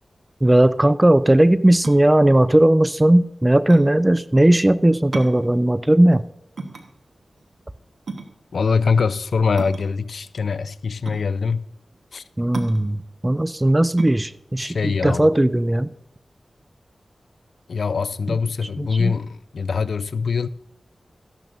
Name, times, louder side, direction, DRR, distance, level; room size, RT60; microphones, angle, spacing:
voice 1, 0.4-6.2 12.4-15.9 18.3-18.4 18.8-19.2, right 1 dB, 20° right, 0.4 m, -17 dB
sound 1, 1.8-16.0, right 3 dB, 85° right, 1.2 m, -37 dB
voice 2, 8.5-11.7 12.1-12.2 14.6-15.3 17.7-20.5, left 5 dB, 85° left, 0.4 m, -23 dB
14.0 x 10.5 x 2.6 m
cardioid pair, 45°, 0 cm